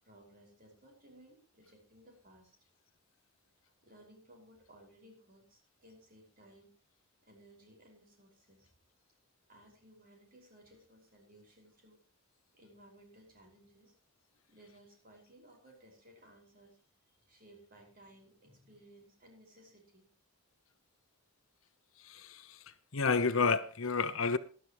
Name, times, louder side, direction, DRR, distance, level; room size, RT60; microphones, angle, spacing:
voice 1, 0.0-2.6 3.8-6.7 7.2-8.7 9.5-12.0 12.5-13.9 14.5-16.8 17.3-20.1, right 1 dB, 40° right, 5.6 m, -60 dB
voice 2, 22.1-22.4 22.9-24.4, left 4 dB, 70° left, 0.9 m, -30 dB
19.5 x 11.5 x 3.1 m
head